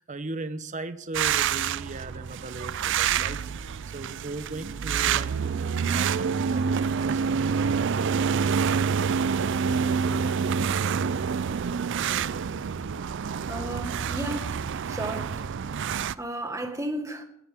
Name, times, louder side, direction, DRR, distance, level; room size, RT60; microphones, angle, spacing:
voice 1, 0.0-7.2, right 3 dB, 35° right, 0.9 m, -38 dB
sound 1, 1.1-16.1, right 6 dB, 55° right, 0.4 m, -27 dB
voice 2, 13.5-17.2, right 1 dB, 15° right, 1.7 m, -35 dB
17.5 x 14.0 x 3.6 m
head